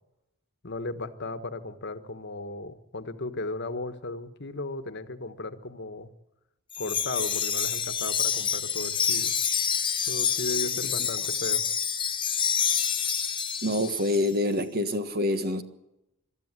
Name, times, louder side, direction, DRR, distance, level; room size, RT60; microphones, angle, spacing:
voice 1, 0.6-6.1 6.8-9.3 10.1-11.6, left 2 dB, 55° left, 1.4 m, -36 dB
Wind chime, 6.7-14.2, left 7 dB, 25° left, 1.0 m, -27 dB
voice 2, 13.6-15.6, left 1 dB, 50° right, 1.6 m, -26 dB
23.0 x 13.5 x 9.7 m
head